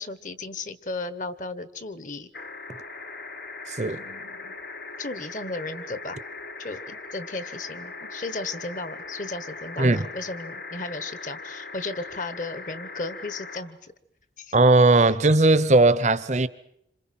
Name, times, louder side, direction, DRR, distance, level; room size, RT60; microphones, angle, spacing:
voice 1, 0.0-2.3 3.8-4.5 5.0-6.2 6.6-13.9 14.4-14.5, left 3 dB, 45° left, 1.2 m, -35 dB
sound 1, 2.3-13.6 15.0-15.1, left 4 dB, 65° left, 3.7 m, -40 dB
voice 2, 14.5-16.5, right 2 dB, 40° right, 0.9 m, -18 dB
27.0 x 27.0 x 5.9 m
head